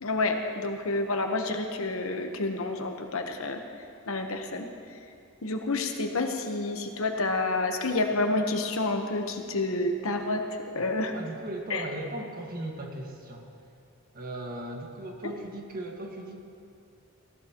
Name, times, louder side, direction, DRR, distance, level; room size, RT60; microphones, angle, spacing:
voice 1, 0.0-3.6 4.1-4.7 5.4-10.4 10.7-11.1 11.7-11.8, left 2 dB, 65° left, 4 dB, 1.1 m, -29 dB
voice 2, 10.8-13.5 14.1-16.4, right 1 dB, 40° right, 1 dB, 1.7 m, -38 dB
19.5 x 16.5 x 3.0 m, 2.4 s
head